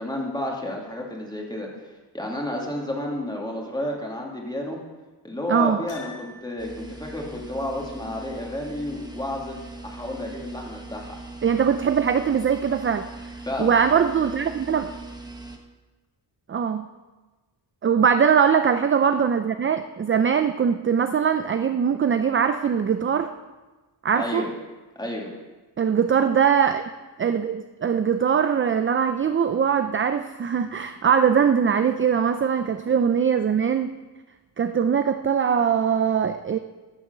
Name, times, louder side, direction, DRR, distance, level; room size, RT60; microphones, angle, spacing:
voice 1, 0.0-1.7 2.1-4.8 5.2-9.6 9.8-11.2 13.5-13.7 24.1-24.5 25.0-25.3, left 1 dB, 10° left, -1 dB, 2.2 m, -31 dB
voice 2, 5.5-5.8 11.4-13.1 13.6-14.9 16.5-16.9 17.8-23.3 24.0-24.5 25.8-26.8 27.2-33.9 34.6-36.6, right 7 dB, 30° right, 9 dB, 0.4 m, -21 dB
Piano, 5.9-6.7, left 2 dB, 70° left, 3.1 m, -42 dB
sound 1, 6.6-15.6, right 2 dB, 10° right, 1.0 m, -40 dB
14.0 x 7.0 x 6.7 m, 1.2 s
wide cardioid pair, 165°, 42 cm